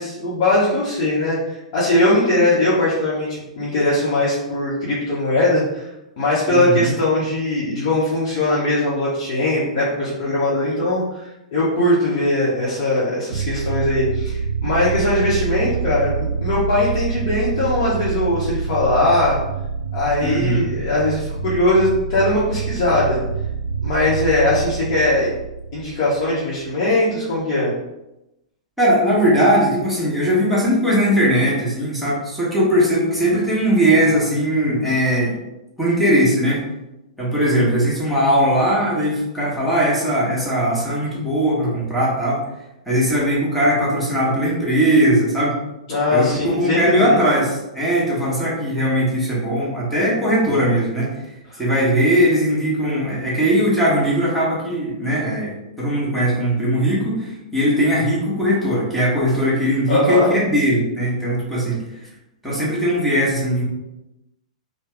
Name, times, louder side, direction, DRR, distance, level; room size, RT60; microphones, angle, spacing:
voice 1, 0.0-5.9 6.2-19.4 19.9-23.2 23.8-25.3 25.7-27.7 45.9-47.2 51.5-51.6 59.9-60.3, left 1 dB, 45° left, -8 dB, 1.0 m, -20 dB
voice 2, 6.5-6.9 20.2-20.7 28.8-35.3 35.8-36.6 37.2-42.4 42.9-45.6 46.1-51.1 51.6-62.1 62.4-63.6, equal, ahead, -7 dB, 1.3 m, -19 dB
sound 1, 13.3-26.7, right 5 dB, 65° right, 0.4 m, -26 dB
3.3 x 2.2 x 3.3 m, 0.92 s
figure-of-eight pair, 105°, 4 cm